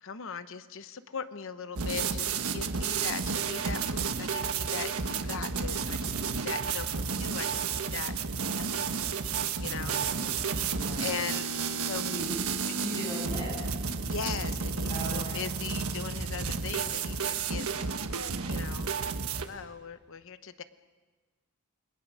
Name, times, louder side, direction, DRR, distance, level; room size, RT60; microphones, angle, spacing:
voice 1, 0.0-8.1 8.6-8.8 9.6-10.0 11.0-12.0 14.1-17.9 18.5-18.9 19.3-20.6, left 6 dB, 60° left, 12 dB, 0.9 m, -39 dB
sound 1, 1.8-19.5, right 5 dB, 75° right, 1.4 m, -32 dB
voice 2, 9.6-10.4 10.7-11.3 12.0-12.3 12.8-14.0 14.9-15.5, equal, 20° left, -2 dB, 7.8 m, -39 dB
29.0 x 21.5 x 6.3 m, 1.3 s
head